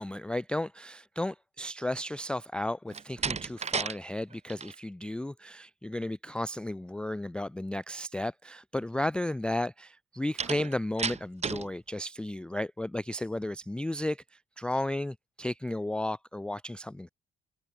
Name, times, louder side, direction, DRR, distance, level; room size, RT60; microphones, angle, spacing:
voice 1, 0.0-14.2 14.6-17.1, left 1 dB, 5° left, 0.3 m, -34 dB
Slam, 2.9-4.0 4.3-4.8 10.4-11.7, right 6 dB, 35° right, 1.1 m, -33 dB
cardioid pair, 90°, 20 cm